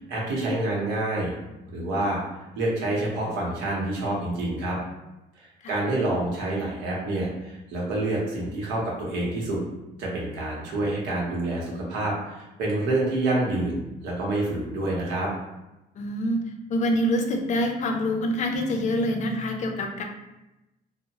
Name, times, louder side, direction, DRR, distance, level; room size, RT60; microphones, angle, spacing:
voice 1, 0.1-1.3 1.7-2.2 2.6-4.8 5.4-9.6 10.0-15.3, right 2 dB, 90° right, -3 dB, 0.8 m, -27 dB
voice 2, 16.0-16.4 16.7-20.0, equal, 45° left, 3 dB, 0.4 m, -26 dB
2.7 x 2.0 x 2.9 m, 0.97 s
cardioid pair, 110°, 17 cm